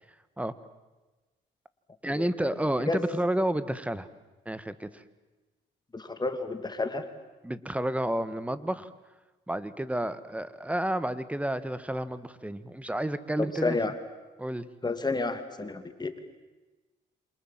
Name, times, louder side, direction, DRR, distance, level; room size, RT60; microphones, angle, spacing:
voice 1, 2.0-4.1 4.4-5.0 7.4-8.9 9.5-13.8 14.4-14.6, right 1 dB, 5° right, 14 dB, 1.6 m, -30 dB
voice 2, 5.9-7.0 13.4-13.9 14.8-16.2, left 3 dB, 20° left, 8 dB, 2.8 m, -30 dB
28.0 x 26.5 x 7.6 m, 1.2 s
cardioid pair, 90°, 20 cm